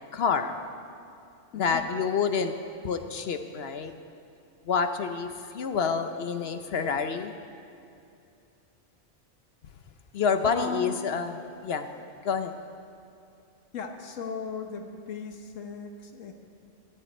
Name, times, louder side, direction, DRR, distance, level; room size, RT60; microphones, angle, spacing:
voice 1, 0.1-0.5 1.6-2.5 2.8-3.9 4.7-7.3 10.1-11.3 11.6-11.9 12.2-12.5, left 6 dB, 60° left, 8 dB, 0.9 m, -28 dB
voice 2, 1.5-1.9 10.5-11.0 13.7-16.3, left 4 dB, 85° left, 4 dB, 1.3 m, -37 dB
14.0 x 7.8 x 8.7 m, 2.5 s
omnidirectional pair, 1.3 m